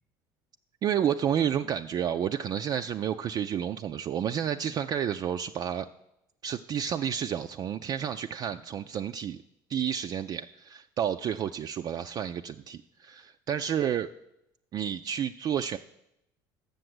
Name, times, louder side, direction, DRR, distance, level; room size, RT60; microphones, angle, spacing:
voice 1, 0.8-5.9 6.4-9.4 9.7-14.1 14.7-15.8, right 9 dB, 45° right, 7 dB, 0.3 m, -30 dB
6.9 x 6.6 x 7.8 m, 0.84 s
supercardioid pair, 80°, 10 cm